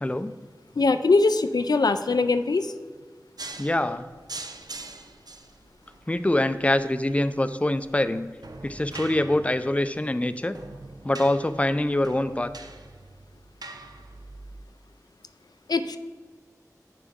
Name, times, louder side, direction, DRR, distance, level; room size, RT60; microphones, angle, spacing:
voice 1, 0.0-0.4 3.6-4.1 6.1-8.3 8.6-10.6 11.0-12.5, left 1 dB, 20° left, 12 dB, 0.4 m, -24 dB
voice 2, 0.8-2.7 15.7-16.0, left 3 dB, 85° left, 10 dB, 0.4 m, -22 dB
sound 1, 3.4-14.6, right 2 dB, 80° right, 0.6 m, -43 dB
8.4 x 6.7 x 3.6 m, 1.6 s
wide cardioid pair, 40°, 7 cm